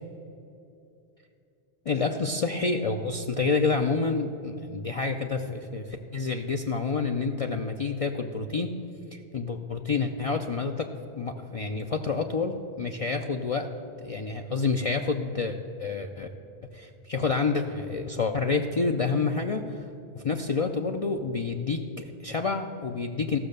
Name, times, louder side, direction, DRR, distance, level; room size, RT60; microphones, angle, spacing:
voice 1, 1.9-8.7 9.1-10.9 11.1-13.7 14.0-16.3 16.7-19.8 20.1-23.4, left 4 dB, 45° left, 4 dB, 0.5 m, -28 dB
14.0 x 6.4 x 6.6 m, 2.7 s
omnidirectional pair, 1.0 m